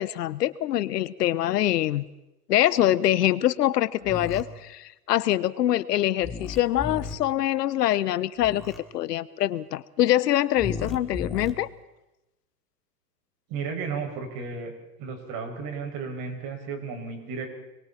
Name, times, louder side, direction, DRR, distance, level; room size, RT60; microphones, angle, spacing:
voice 1, 0.0-2.0 2.5-8.6 8.9-11.7, left 13 dB, 75° left, 17 dB, 1.1 m, -24 dB
sound 1, 4.0-4.4 6.2-7.1 8.4-8.8 10.6-11.5, left 4 dB, ahead, 3.0 m, -34 dB
voice 2, 13.5-14.7 15.0-17.5, right 5 dB, 45° right, 3 dB, 6.7 m, -33 dB
30.0 x 22.5 x 4.4 m, 0.95 s
hypercardioid pair, 125°, 48 cm